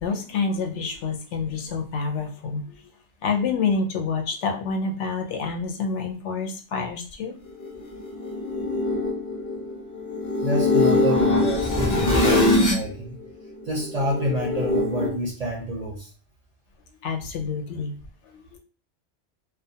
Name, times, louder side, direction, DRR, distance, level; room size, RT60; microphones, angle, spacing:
voice 1, 0.0-2.8 3.2-7.3 17.0-17.9 18.2-18.6, left 4 dB, 90° left, 2 dB, 0.9 m, -28 dB
sound 1, 7.6-12.9 13.2-15.1, left 2 dB, 30° left, 0.3 m, -23 dB
voice 2, 10.4-13.2 13.6-16.1, equal, 50° right, -1 dB, 0.5 m, -28 dB
2.3 x 2.2 x 2.6 m, 0.39 s
omnidirectional pair, 1.2 m